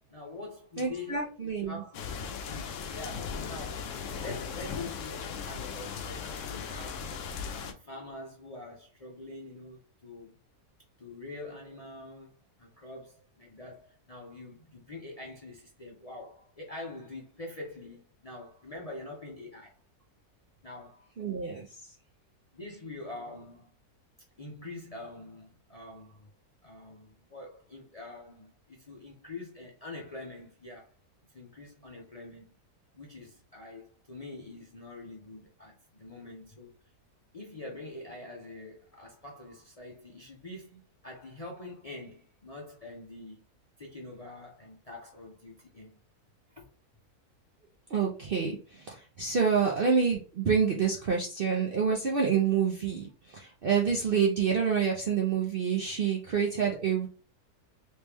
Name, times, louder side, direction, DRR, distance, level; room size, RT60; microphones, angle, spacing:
voice 1, 0.1-1.3 1.7-7.1 7.5-10.4 11.0-12.3 12.6-19.7 20.6-21.1 22.5-23.7 24.4-26.3 26.6-30.9 31.3-32.5 32.9-36.7 37.3-43.4 43.8-46.0 46.5-46.6 49.5-49.6, left 2 dB, 35° left, 0.6 m, -45 dB
voice 2, 0.8-1.8 21.2-21.8 47.9-57.1, right 6 dB, 55° right, 0.6 m, -27 dB
sound 1, 1.9-7.7, left 6 dB, 65° left, 0.8 m, -37 dB
3.2 x 3.1 x 3.4 m
omnidirectional pair, 1.6 m